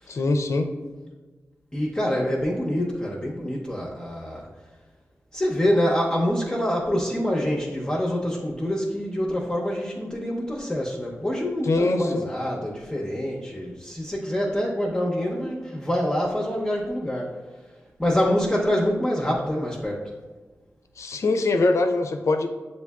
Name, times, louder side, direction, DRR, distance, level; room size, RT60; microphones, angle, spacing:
voice 1, 0.1-0.7 11.6-12.3 21.0-22.5, left 3 dB, 70° left, 6 dB, 0.4 m, -23 dB
voice 2, 1.7-4.5 5.3-17.4 18.0-20.0, equal, 15° left, -3 dB, 0.7 m, -26 dB
6.9 x 2.7 x 2.3 m, 1.4 s
cardioid pair, 50°, 5 cm